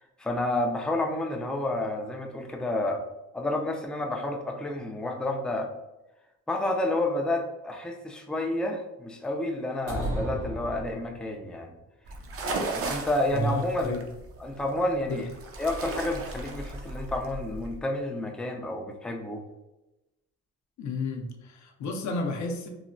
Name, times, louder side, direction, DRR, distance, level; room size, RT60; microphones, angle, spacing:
voice 1, 0.2-3.0 3.3-5.7 6.5-11.7 12.8-14.0 14.4-15.3 15.6-19.4, left 1 dB, 5° left, 0.3 m, -30 dB
sound 1, 9.9-11.5, right 1 dB, 90° right, 1.1 m, -33 dB
sound 2, 12.0-17.8, right 2 dB, 50° right, 0.6 m, -36 dB
voice 2, 13.3-14.1 15.1-15.3 20.8-22.7, left 2 dB, 70° left, 0.6 m, -32 dB
3.1 x 2.0 x 2.5 m
cardioid pair, 90°, 30 cm